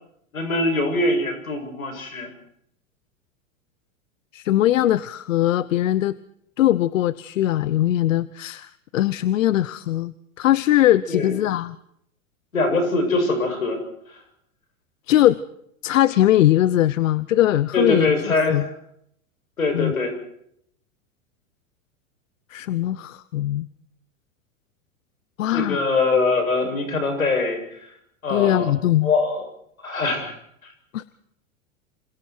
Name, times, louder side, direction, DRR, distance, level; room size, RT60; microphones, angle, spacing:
voice 1, 0.3-2.3 11.1-11.4 12.5-13.8 14.1-14.2 17.7-18.7 19.6-20.2 25.5-27.6 28.2-28.7 29.0-29.4 29.8-30.4, left 3 dB, 90° left, 6 dB, 7.6 m, -22 dB
voice 2, 4.3-6.2 6.6-11.8 15.1-15.4 15.8-18.1 18.5-18.6 19.7-19.9 22.5-23.7 25.4-25.8 28.3-29.1 30.9-31.0, left 13 dB, 70° left, 18 dB, 1.0 m, -20 dB
28.0 x 27.5 x 4.7 m, 0.72 s
hypercardioid pair, 100°, 40 cm